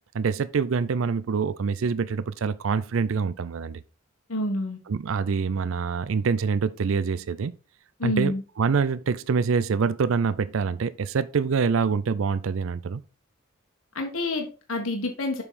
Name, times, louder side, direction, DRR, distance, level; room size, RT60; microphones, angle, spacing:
voice 1, 0.1-3.8 4.9-7.5 8.0-13.0, right 5 dB, 70° right, 0.4 m, -25 dB
voice 2, 4.3-4.8 8.0-8.4 13.9-15.4, left 1 dB, 85° left, 1.5 m, -28 dB
7.1 x 5.5 x 4.1 m
head